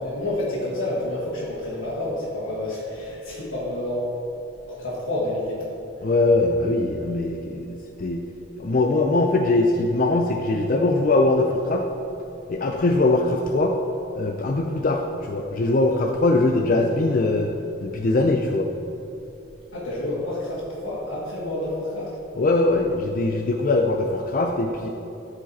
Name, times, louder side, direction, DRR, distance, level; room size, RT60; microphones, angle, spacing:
voice 1, 0.0-4.2 4.7-5.6 6.0-6.1 19.7-22.1, left 1 dB, 85° left, -10 dB, 1.9 m, -29 dB
voice 2, 6.0-8.2 8.6-11.8 12.5-13.7 14.1-17.5 17.8-18.7 22.4-24.9, left 2 dB, 45° left, 3 dB, 0.4 m, -21 dB
13.0 x 5.0 x 4.1 m, 3.0 s
head